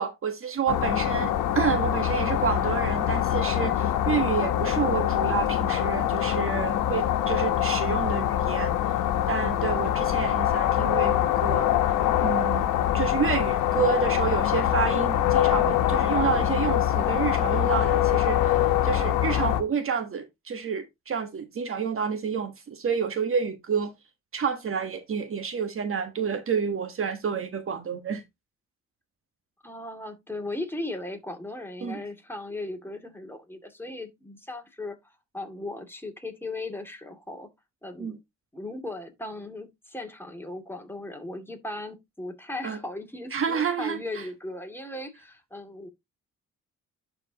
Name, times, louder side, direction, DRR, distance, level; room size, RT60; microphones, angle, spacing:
voice 1, 0.0-8.7 9.3-11.7 12.2-12.7 12.9-23.9 24.3-28.2 31.8-32.0 38.0-38.2 42.6-42.8 43.3-44.3, right 6 dB, 45° right, 1.4 m, -29 dB
sound 1, 0.7-19.6, left 11 dB, 85° left, 1.2 m, -24 dB
voice 2, 29.6-37.5 37.8-38.2 38.5-45.9, left 2 dB, 5° left, 2.3 m, -37 dB
11.5 x 4.5 x 2.8 m
cardioid pair, 90°, 30 cm